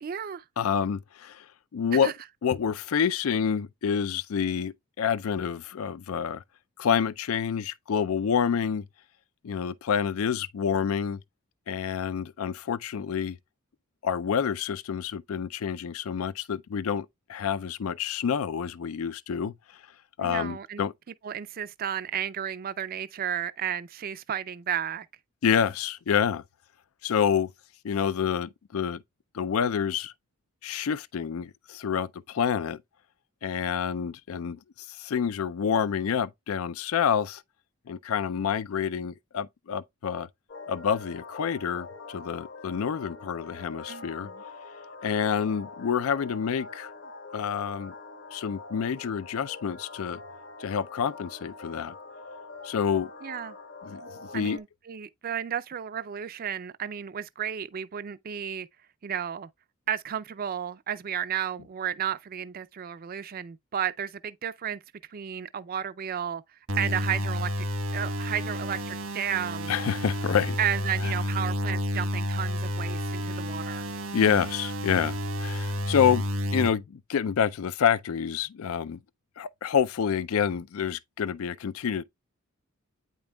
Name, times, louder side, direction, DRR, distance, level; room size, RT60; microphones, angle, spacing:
voice 1, 0.0-0.4 1.9-2.1 20.2-20.8 21.2-25.1 43.9-44.4 53.2-53.6 54.3-58.7 59.0-59.5 59.9-64.8 65.1-67.7 67.9-69.7 70.6-73.9, right 9 dB, 45° right, 0.4 m, -33 dB
voice 2, 0.6-1.5 1.7-2.1 2.4-6.4 6.8-8.8 9.4-11.2 11.7-13.4 14.0-19.8 20.2-20.9 25.4-26.4 27.0-27.5 27.8-29.0 29.3-30.1 30.6-32.8 33.4-37.4 37.9-40.3 40.7-44.3 45.0-46.9 47.3-47.9 48.3-50.2 50.6-51.9 52.6-53.1 53.8-54.6 69.7-70.6 71.0-71.1 74.1-76.2 76.5-79.0 79.4-82.0, left 7 dB, 75° left, 0.4 m, -28 dB
sound 1, 40.5-54.6, left 3 dB, 55° left, 1.3 m, -44 dB
sound 2, 66.7-76.7, equal, 85° right, 1.3 m, -30 dB
8.9 x 5.3 x 2.3 m
head